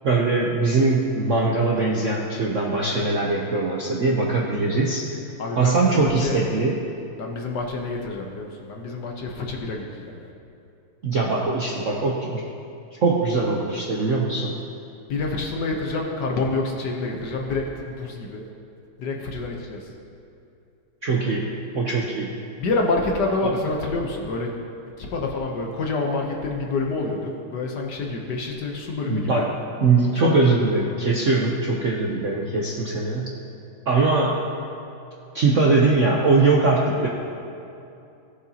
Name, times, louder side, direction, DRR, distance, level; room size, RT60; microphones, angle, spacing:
voice 1, 0.0-5.0 5.6-6.8 11.0-12.4 13.0-14.6 21.0-21.5 21.7-22.3 29.1-29.5 29.8-33.3 33.9-34.4 35.3-37.1, right 3 dB, 60° right, -2 dB, 0.8 m, -21 dB
voice 2, 5.4-6.4 7.2-10.3 15.1-18.4 19.0-19.9 22.6-24.5 25.0-29.4 30.2-30.3, left 3 dB, 60° left, 1 dB, 1.3 m, -27 dB
17.5 x 8.0 x 2.8 m, 2.7 s
omnidirectional pair, 2.4 m